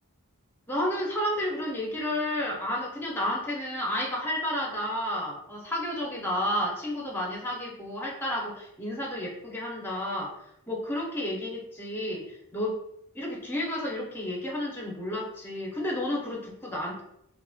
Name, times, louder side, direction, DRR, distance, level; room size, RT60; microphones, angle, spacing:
voice 1, 0.7-10.3 10.7-12.8 13.1-17.0, left 1 dB, 10° left, -2 dB, 0.6 m, -31 dB
3.1 x 2.8 x 2.3 m, 0.76 s
head